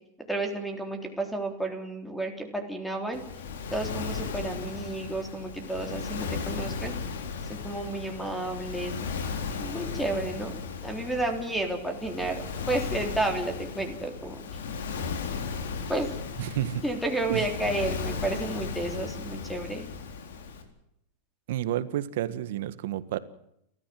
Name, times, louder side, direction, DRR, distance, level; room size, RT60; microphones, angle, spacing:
voice 1, 0.3-3.3 3.7-6.9 7.5-8.9 9.6-14.4 15.9-16.1 16.8-19.9, right 2 dB, 5° left, 5 dB, 3.6 m, -31 dB
Waves surf, 3.1-20.6, left 5 dB, 85° left, 4.1 m, -36 dB
voice 2, 16.4-16.8 17.3-17.5 21.5-23.2, right 12 dB, 70° right, 13 dB, 1.7 m, -30 dB
30.0 x 14.5 x 7.9 m, 0.77 s
supercardioid pair, 135°, 0 cm